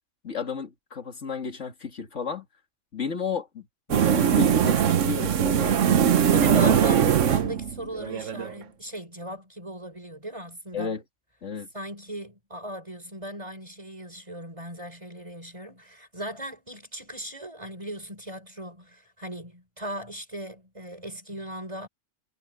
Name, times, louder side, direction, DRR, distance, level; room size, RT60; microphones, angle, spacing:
voice 1, 0.2-2.5 2.9-5.9 6.3-6.6 10.7-11.0 11.4-11.7, left 5 dB, 65° left, 2.4 m, -33 dB
sound 1, 3.9-8.5, right 8 dB, 70° right, 1.2 m, -21 dB
voice 2, 6.3-10.9 11.7-21.9, right 1 dB, 25° right, 4.6 m, -38 dB
omnidirectional pair, 1.3 m